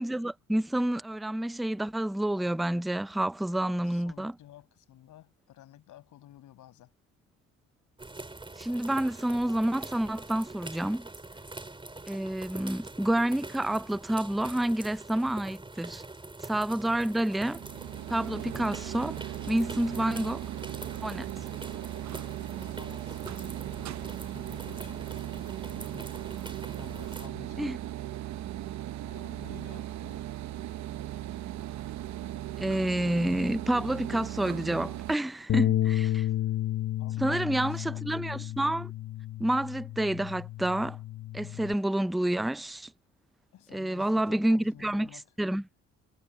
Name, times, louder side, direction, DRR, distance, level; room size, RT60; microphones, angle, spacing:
voice 1, 0.0-4.3 8.6-11.1 12.1-16.0 16.4-17.6 18.1-20.5 21.0-21.3 27.6-27.8 32.6-36.2 37.2-38.9 39.4-41.0 41.3-42.9 43.7-45.1 45.4-45.6, right 1 dB, ahead, 0.4 m, -29 dB
voice 2, 3.6-6.9 22.6-26.1 26.8-27.7 29.0-30.2 37.0-38.0 43.5-45.3, left 13 dB, 80° left, 6.9 m, -52 dB
sound 1, 8.0-27.3, right 2 dB, 15° right, 4.7 m, -44 dB
sound 2, 17.4-35.2, right 13 dB, 65° right, 0.8 m, -38 dB
Bass guitar, 35.5-41.7, left 13 dB, 55° left, 0.9 m, -31 dB
cardioid pair, 90°, 30 cm